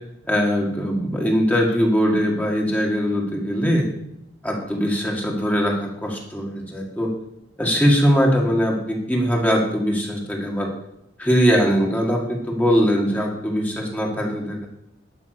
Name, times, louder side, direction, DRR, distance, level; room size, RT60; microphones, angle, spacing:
voice 1, 0.3-3.9 4.4-7.1 7.6-10.7 11.2-14.7, equal, 10° left, 0 dB, 2.0 m, -21 dB
12.0 x 6.0 x 6.7 m, 0.80 s
head